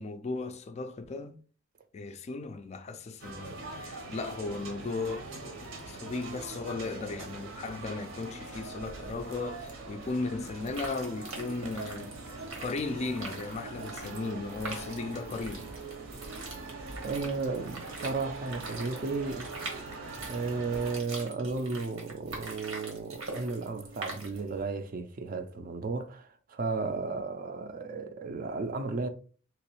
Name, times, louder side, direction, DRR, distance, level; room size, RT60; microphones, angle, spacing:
voice 1, 0.0-1.4 1.9-15.7, left 3 dB, 35° left, 0.3 m, -36 dB
sound 1, 3.2-21.0, right 3 dB, 65° right, 0.8 m, -43 dB
sound 2, 10.6-24.6, right 3 dB, 90° right, 1.2 m, -44 dB
voice 2, 17.0-19.5 20.3-29.1, right 3 dB, 45° right, 0.4 m, -34 dB
3.2 x 3.0 x 3.0 m
head